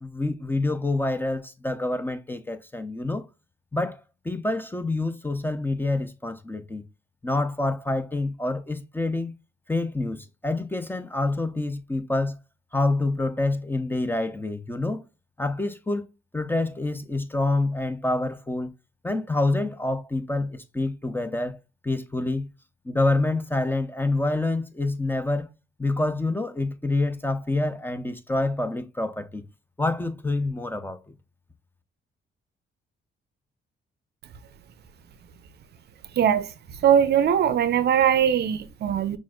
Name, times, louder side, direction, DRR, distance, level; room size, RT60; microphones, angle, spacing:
voice 1, 0.0-3.2 3.7-6.8 7.2-9.3 9.7-12.4 12.7-15.0 15.4-16.1 16.3-18.7 19.0-21.6 21.8-22.5 22.9-25.5 25.8-29.4 29.8-31.0, left 2 dB, 10° left, 0.6 m, -27 dB
voice 2, 36.1-36.5 36.8-39.2, right 9 dB, 55° right, 0.5 m, -21 dB
5.9 x 2.5 x 2.3 m
cardioid pair, 90°, 20 cm